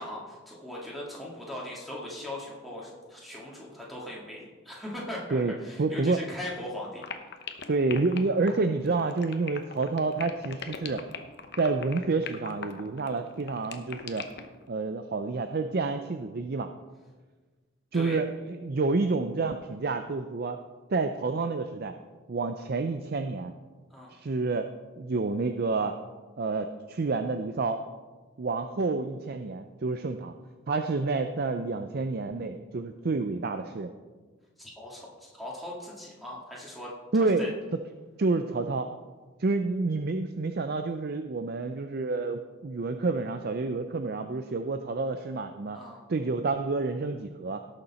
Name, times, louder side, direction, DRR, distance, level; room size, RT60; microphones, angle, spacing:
voice 1, 0.0-7.0 17.9-18.2 23.9-24.2 34.6-37.5 45.7-46.0, left 1 dB, ahead, -4 dB, 2.0 m, -39 dB
voice 2, 5.3-6.2 7.7-11.0 11.6-14.3 14.7-16.7 17.9-20.6 20.9-21.9 22.3-23.5 24.1-24.7 25.0-25.9 26.4-27.8 28.4-30.3 30.7-33.9 37.1-37.5 38.2-38.9 39.4-45.8 46.1-47.6, right 3 dB, 50° right, 8 dB, 0.5 m, -29 dB
sound 1, 7.0-14.5, left 6 dB, 50° left, 0.9 m, -39 dB
17.0 x 6.8 x 4.2 m, 1.4 s
head